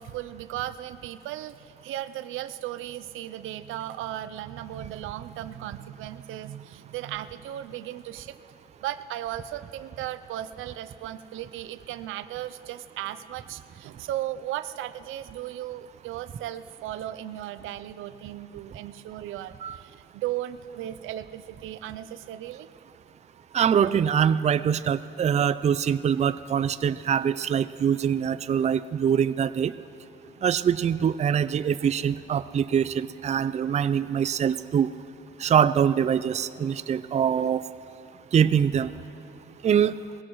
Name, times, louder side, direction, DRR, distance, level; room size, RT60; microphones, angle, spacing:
voice 1, 0.0-8.4 8.8-22.7, right 13 dB, 90° right, 12 dB, 0.6 m, -36 dB
voice 2, 23.5-29.7 30.4-34.9 35.4-37.7 38.3-38.9 39.6-39.9, right 8 dB, 35° right, 14 dB, 0.4 m, -24 dB
21.0 x 17.0 x 3.1 m, 2.9 s
cardioid pair, 90°, 20 cm